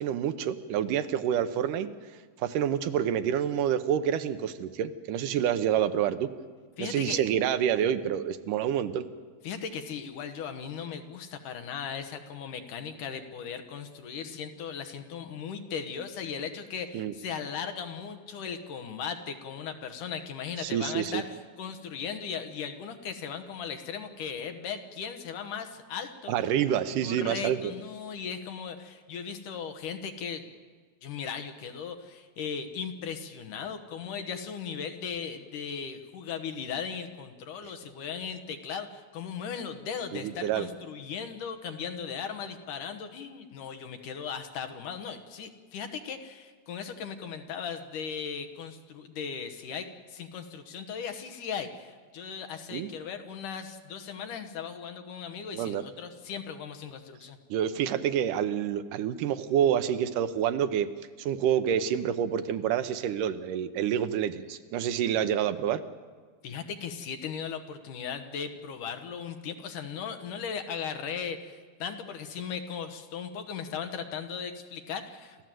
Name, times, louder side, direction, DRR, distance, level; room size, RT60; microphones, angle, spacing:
voice 1, 0.0-1.9 2.4-6.3 6.8-9.1 16.9-17.1 20.6-21.2 26.3-27.7 40.1-40.7 52.7-52.9 55.5-55.8 57.5-60.9 61.2-65.8, right 9 dB, 75° right, 10 dB, 2.1 m, -28 dB
voice 2, 6.8-7.2 9.4-26.3 27.0-30.5 31.0-57.4 66.4-75.4, left 7 dB, 65° left, 7 dB, 2.5 m, -37 dB
29.0 x 14.0 x 7.7 m, 1.5 s
omnidirectional pair, 4.3 m